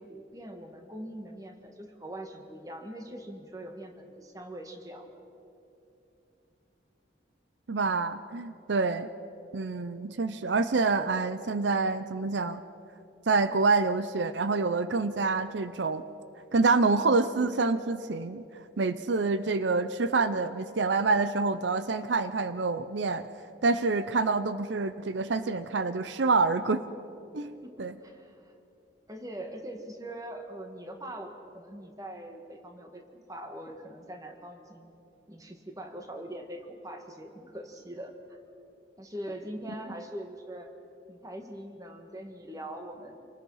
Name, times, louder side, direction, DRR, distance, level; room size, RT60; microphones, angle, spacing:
voice 1, 0.0-5.1 7.8-8.1 27.6-28.5 29.1-34.9 35.3-38.4 39.0-40.7 41.1-43.2, right 1 dB, 20° right, 4 dB, 1.7 m, -42 dB
voice 2, 7.7-9.1 9.5-12.6 13.3-16.0 16.5-18.4 18.8-23.3 23.6-26.8 27.3-27.5 27.8-27.9, right 3 dB, 80° right, 12 dB, 0.7 m, -27 dB
27.0 x 19.5 x 5.6 m, 2.8 s
head